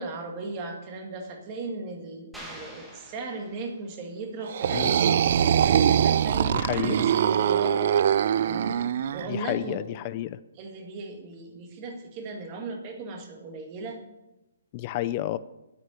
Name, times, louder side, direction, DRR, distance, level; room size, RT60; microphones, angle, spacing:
voice 1, 0.0-8.8 9.1-9.8 10.6-14.0, right 3 dB, 25° right, 3 dB, 1.8 m, -37 dB
sound 1, 2.3-4.1, equal, 5° right, 1.3 m, -45 dB
sound 2, 4.5-9.3, right 9 dB, 45° right, 0.4 m, -23 dB
voice 2, 6.5-7.1 9.3-10.4 14.7-15.4, left 14 dB, 25° left, 14 dB, 0.4 m, -30 dB
9.4 x 9.1 x 7.2 m, 0.97 s
hypercardioid pair, 170°, 0 cm